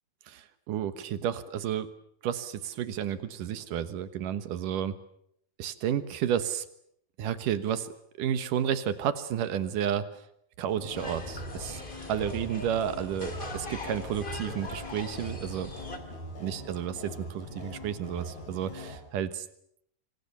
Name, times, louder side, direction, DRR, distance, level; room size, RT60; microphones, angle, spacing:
voice 1, 0.3-1.9 2.2-5.0 5.6-6.7 7.2-7.9 8.2-10.1 10.6-11.8 12.1-15.7 16.4-19.5, right 9 dB, 70° right, 12 dB, 2.7 m, -31 dB
sound 1, 10.7-19.0, left 1 dB, 50° left, 6.6 m, -42 dB
sound 2, 10.9-16.0, left 2 dB, 20° left, 1.7 m, -41 dB
26.0 x 25.0 x 6.9 m, 0.71 s
omnidirectional pair, 4.3 m